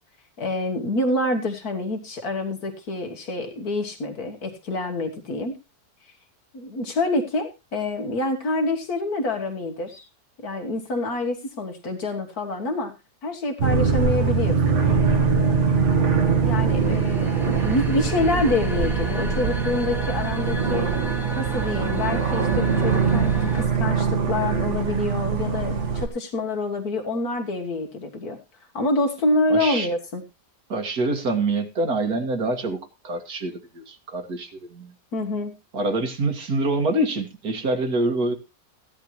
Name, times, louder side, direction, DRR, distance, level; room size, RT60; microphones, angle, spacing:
voice 1, 0.4-5.6 6.5-10.1 10.4-13.0 13.2-14.8 16.4-20.9 21.4-28.4 28.7-30.2 35.1-35.5, left 2 dB, 65° left, 5 dB, 1.9 m, -27 dB
sound 1, 13.6-26.1, right 5 dB, 50° right, 1.5 m, -22 dB
sound 2, 14.8-23.6, right 1 dB, ahead, 1.9 m, -32 dB
voice 2, 29.5-29.9 30.7-34.9 35.7-38.3, right 2 dB, 70° right, 4 dB, 2.5 m, -26 dB
15.0 x 10.5 x 3.1 m, 0.26 s
omnidirectional pair, 1.7 m